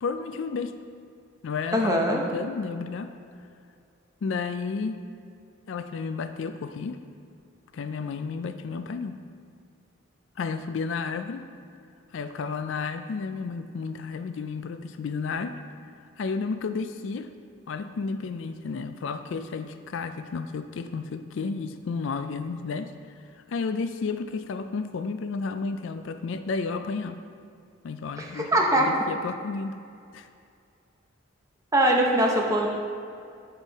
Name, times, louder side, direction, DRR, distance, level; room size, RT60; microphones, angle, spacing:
voice 1, 0.0-0.8 1.4-3.1 4.2-5.0 5.7-7.0 7.7-9.2 10.4-11.4 12.1-15.6 16.2-17.3 17.7-22.9 23.5-27.2 27.8-29.8 30.1-30.3, left 4 dB, 65° left, 9 dB, 0.3 m, -32 dB
voice 2, 1.7-2.2 28.2-28.9 31.7-32.7, right 1 dB, 15° right, -1 dB, 0.8 m, -22 dB
8.0 x 5.3 x 4.1 m, 2.4 s
head